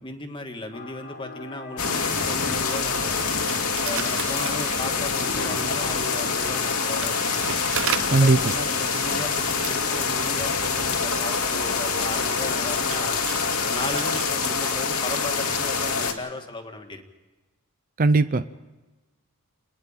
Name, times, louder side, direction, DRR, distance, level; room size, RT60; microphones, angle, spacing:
voice 1, 0.0-3.3 3.8-7.4 8.0-13.2 13.7-17.0, left 2 dB, 20° left, 4 dB, 1.8 m, -36 dB
sound 1, 0.7-14.3, left 3 dB, 45° left, 1.2 m, -41 dB
sound 2, 1.8-16.1, left 5 dB, 85° left, 2.4 m, -25 dB
sound 3, 3.3-5.4 6.0-14.5, right 9 dB, 60° right, 0.8 m, -37 dB
voice 2, 18.0-18.5, right 3 dB, 40° right, 12 dB, 0.5 m, -18 dB
29.0 x 10.5 x 8.9 m, 1.2 s
head